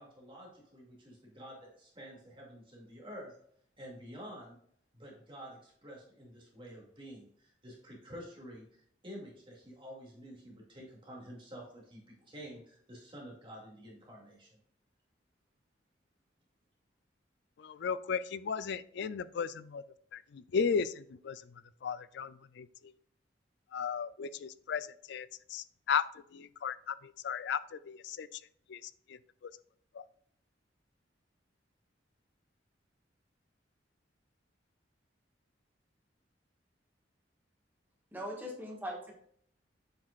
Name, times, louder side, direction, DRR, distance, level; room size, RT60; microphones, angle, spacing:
voice 1, 0.0-3.3 3.8-4.6 4.9-14.6, equal, 30° right, -3 dB, 2.3 m, -49 dB
voice 2, 17.6-19.8 20.1-21.5 21.8-22.9 23.7-26.0 26.3-28.4 28.7-29.5 29.9-30.0, left 6 dB, 65° left, 15 dB, 0.4 m, -36 dB
voice 3, 38.1-39.1, equal, 10° right, -1 dB, 1.5 m, -40 dB
7.7 x 5.6 x 2.4 m, 0.64 s
head